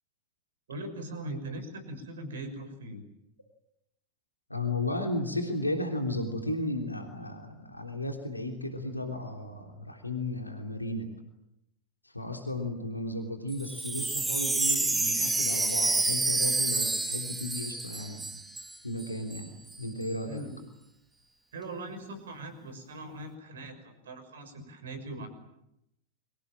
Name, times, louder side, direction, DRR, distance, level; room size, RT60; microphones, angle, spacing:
voice 1, 0.7-3.0 12.6-12.7 20.3-20.6 21.5-25.3, right 1 dB, 65° right, 10 dB, 6.2 m, -40 dB
voice 2, 4.5-11.1 12.0-18.3 18.8-20.4, left 1 dB, 85° left, 4 dB, 3.4 m, -34 dB
Wind chime, 13.5-18.7 19.0-19.1 19.3-19.8, right 3 dB, 10° right, 3.2 m, -29 dB
30.0 x 24.5 x 7.6 m, 0.85 s
figure-of-eight pair, 90°, 0 cm